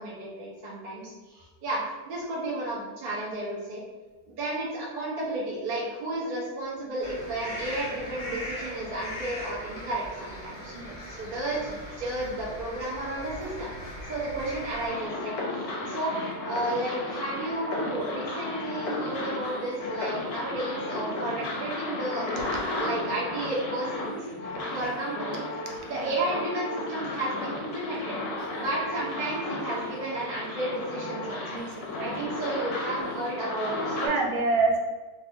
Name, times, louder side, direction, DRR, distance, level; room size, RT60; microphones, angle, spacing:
voice 1, 0.0-3.8 4.4-10.7 11.2-13.7 14.1-22.5 22.7-24.2 24.7-25.4 25.8-28.2 28.5-31.4 32.0-34.1, right 2 dB, 55° right, -6 dB, 0.5 m, -32 dB
sound 1, 7.0-14.9, left 1 dB, 85° left, 0.4 m, -39 dB
voice 2, 10.7-11.2 25.8-26.1 31.5-32.3 34.0-34.8, right 3 dB, 85° right, 1 dB, 1.4 m, -28 dB
sound 2, 14.9-34.1, left 2 dB, 70° left, 0.9 m, -34 dB
3.3 x 2.6 x 2.6 m, 1.3 s
omnidirectional pair, 2.2 m